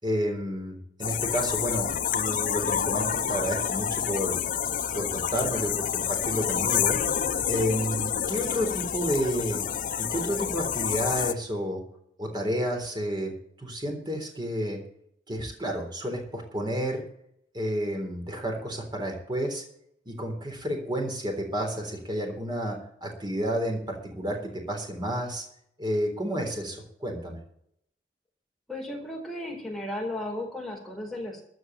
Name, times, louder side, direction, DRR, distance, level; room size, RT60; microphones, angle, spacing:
voice 1, 0.0-4.4 4.9-7.0 7.5-9.6 10.0-11.8 12.2-13.3 13.6-14.8 15.3-17.0 17.5-19.6 20.1-25.4 25.8-27.4, equal, 25° right, 2 dB, 3.8 m, -30 dB
sound 1, 1.0-11.3, left 8 dB, 50° left, 0.7 m, -28 dB
voice 2, 28.7-31.4, left 1 dB, ahead, -1 dB, 4.1 m, -35 dB
14.0 x 6.1 x 9.2 m, 0.69 s
head